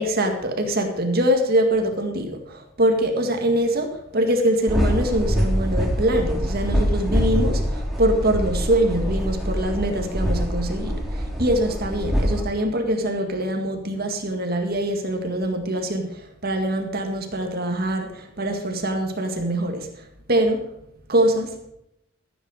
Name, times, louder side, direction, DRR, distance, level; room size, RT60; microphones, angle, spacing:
voice 1, 0.0-20.7 21.1-21.6, right 1 dB, 50° right, 4 dB, 1.9 m, -23 dB
sound 1, 4.7-12.4, equal, ahead, 2.5 m, -24 dB
14.5 x 9.3 x 4.9 m, 0.80 s
head